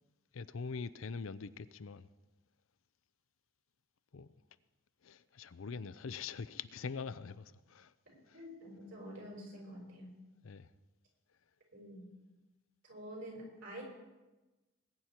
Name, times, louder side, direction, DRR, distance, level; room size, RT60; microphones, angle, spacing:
voice 1, 0.3-2.1 4.1-4.3 5.0-7.9 8.3-8.4 10.4-10.7, left 5 dB, 85° left, 0.6 m, -43 dB
voice 2, 8.3-10.1 11.7-12.0 12.8-13.8, equal, 70° right, 5.1 m, -47 dB
20.0 x 9.5 x 4.4 m
head